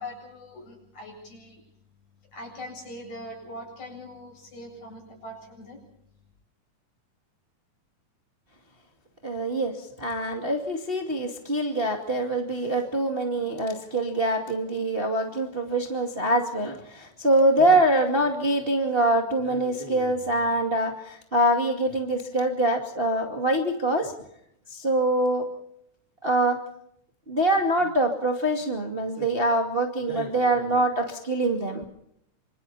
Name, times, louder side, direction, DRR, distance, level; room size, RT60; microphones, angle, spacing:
voice 1, 0.0-1.6 2.3-5.8, left 1 dB, 60° left, 2 dB, 9.1 m, -41 dB
voice 2, 9.2-9.7 10.0-24.1 24.7-25.4 26.2-26.6 27.3-31.9, right 1 dB, 20° right, 3 dB, 2.1 m, -24 dB
27.5 x 26.5 x 4.2 m, 0.73 s
omnidirectional pair, 3.7 m